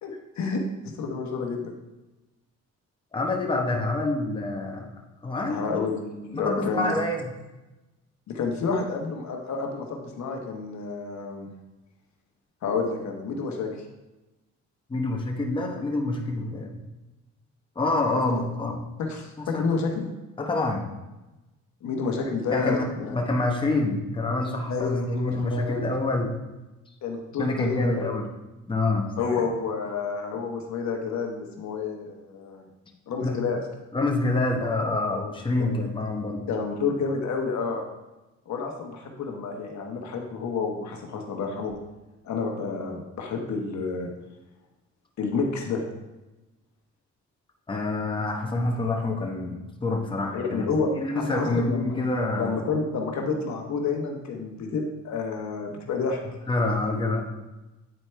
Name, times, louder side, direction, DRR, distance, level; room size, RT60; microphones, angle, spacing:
voice 1, 0.0-1.7 5.5-6.9 8.3-11.5 12.6-13.7 18.3-18.4 19.0-20.1 21.8-23.2 24.7-25.9 27.0-28.1 29.2-32.7 33.1-33.6 35.6-35.7 36.5-37.8 38.5-41.7 42.2-44.1 45.2-45.8 50.3-51.9 52.3-56.2, left 4 dB, 65° left, 2 dB, 1.1 m, -29 dB
voice 2, 3.1-4.9 5.2-5.8 6.3-7.3 14.9-16.8 17.8-18.8 19.4-19.6 20.4-20.9 22.5-22.8 23.1-26.3 27.4-28.3 28.7-29.1 33.2-33.4 33.9-36.4 47.7-50.7 51.0-52.5 56.5-57.3, left 2 dB, 15° left, 0 dB, 1.1 m, -26 dB
9.0 x 4.3 x 3.3 m, 1.1 s
cardioid pair, 90°, 30 cm